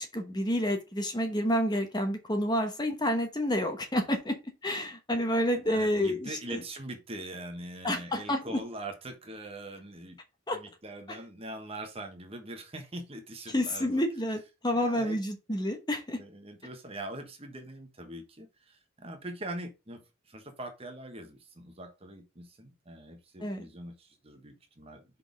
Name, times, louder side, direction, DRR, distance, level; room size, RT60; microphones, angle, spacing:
voice 1, 0.0-6.6 7.8-8.6 10.5-10.6 11.1-11.2 13.5-16.2 23.4-23.7, left 1 dB, 20° left, 1.0 m, -29 dB
voice 2, 5.7-10.2 10.5-14.0 14.7-15.2 16.2-20.0 20.3-25.2, right 1 dB, 30° right, 1.2 m, -42 dB
5.5 x 4.2 x 5.2 m
head